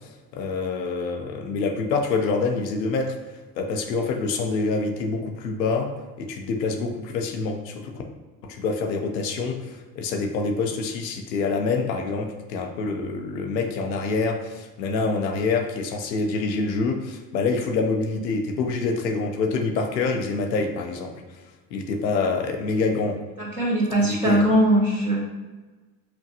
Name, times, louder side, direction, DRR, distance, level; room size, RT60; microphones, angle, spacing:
voice 1, 0.3-3.2 3.6-5.9 6.2-7.9 8.4-21.1 21.7-23.2 24.1-24.5, left 4 dB, 90° left, 3 dB, 0.7 m, -26 dB
voice 2, 23.4-25.2, right 1 dB, 5° right, -10 dB, 1.4 m, -20 dB
5.8 x 2.2 x 2.8 m, 1.2 s
hypercardioid pair, 75°, 49 cm